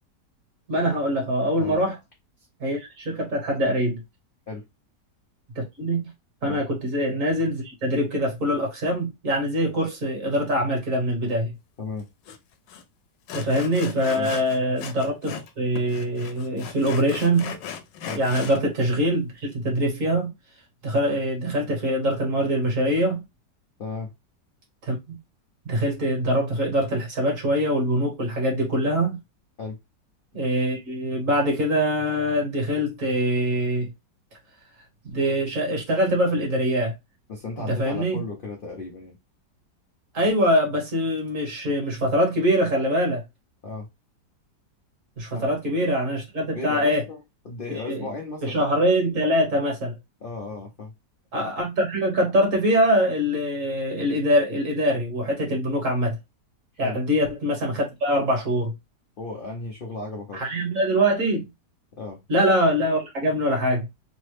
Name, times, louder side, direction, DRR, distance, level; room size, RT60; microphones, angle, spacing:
voice 1, 0.7-2.0 2.6-4.0 5.5-6.1 6.4-11.5 13.3-17.5 18.1-20.3 20.8-23.2 24.8-25.2 25.6-29.2 30.3-33.9 35.0-36.9 37.7-38.2 40.1-43.2 45.2-47.0 47.9-48.1 48.4-49.9 51.3-56.2 56.8-58.7 60.3-61.5 62.3-63.9, equal, 50° right, 1.5 m, -23 dB
Sawing, 12.3-12.4 12.7-12.8 13.3-15.5 15.8-18.6, left 7 dB, 85° left, 1.2 m, -37 dB
voice 2, 23.8-24.1 29.6-29.8 37.3-39.2 43.6-43.9 45.3-45.5 46.5-48.8 50.2-50.9 56.8-57.0 59.2-60.4 61.9-62.2, left 3 dB, 65° left, 0.5 m, -35 dB
3.3 x 2.1 x 3.1 m
omnidirectional pair, 1.8 m